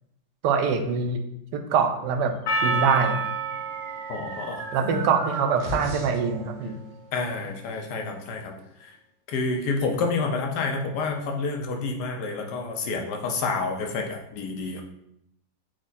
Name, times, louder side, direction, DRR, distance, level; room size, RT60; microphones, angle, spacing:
voice 1, 0.4-1.2 1.5-2.3 2.6-3.2 4.7-6.8, right 5 dB, 90° right, 6 dB, 1.2 m, -24 dB
Percussion, 2.5-6.8, right 3 dB, 65° left, 0.7 m, -31 dB
sound 1, 2.8-6.3, right 1 dB, 60° right, 1.0 m, -37 dB
voice 2, 4.1-5.0 7.1-8.5 8.8-8.9 9.3-14.8, left 4 dB, 80° left, 3 dB, 1.2 m, -29 dB
4.6 x 2.2 x 4.0 m, 0.77 s
omnidirectional pair, 1.8 m